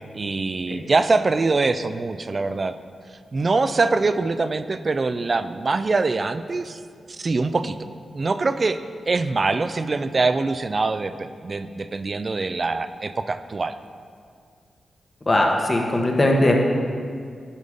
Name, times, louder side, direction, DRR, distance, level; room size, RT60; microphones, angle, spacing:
voice 1, 0.1-2.7 3.3-6.8 7.1-7.8 8.1-8.8 9.1-13.7, right 3 dB, 45° right, 11 dB, 0.3 m, -23 dB
voice 2, 15.3-16.6, left 1 dB, 35° left, 1 dB, 1.2 m, -19 dB
10.5 x 3.6 x 5.3 m, 2.2 s
cardioid pair, 65°, 0 cm